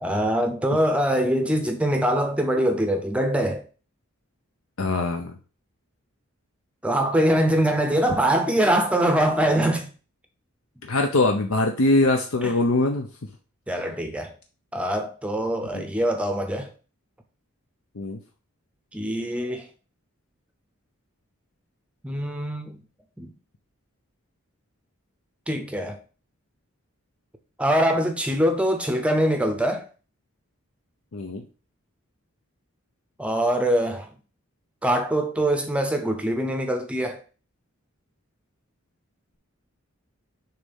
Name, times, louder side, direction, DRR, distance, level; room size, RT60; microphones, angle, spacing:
voice 1, 0.0-3.6 6.8-9.9 12.4-12.5 13.7-14.3 14.7-16.7 18.9-19.7 22.0-22.8 23.2-23.3 25.5-26.0 27.6-29.8 33.2-34.1 34.8-37.2, right 1 dB, 5° right, 0.6 m, -23 dB
voice 2, 4.8-5.4 10.8-13.1 15.7-15.8 18.0-18.2 31.1-31.4, left 2 dB, 80° left, 0.7 m, -22 dB
6.7 x 3.2 x 5.5 m
head